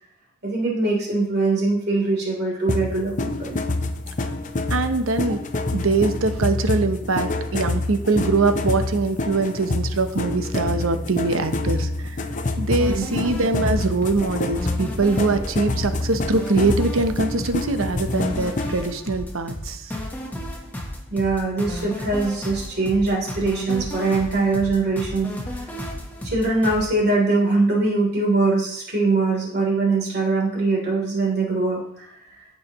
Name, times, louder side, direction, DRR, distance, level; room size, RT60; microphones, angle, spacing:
voice 1, 0.4-3.6 12.8-13.0 21.1-25.3 26.2-32.5, right 3 dB, 50° right, -2 dB, 3.3 m, -22 dB
sound 1, 2.7-18.9, left 2 dB, 35° left, 0.6 m, -27 dB
voice 2, 4.7-5.4 5.7-12.2 12.6-19.9, right 3 dB, 80° right, 8 dB, 0.8 m, -23 dB
sound 2, 12.8-26.9, left 1 dB, 10° left, 1.1 m, -33 dB
14.5 x 5.5 x 3.0 m, 0.72 s
head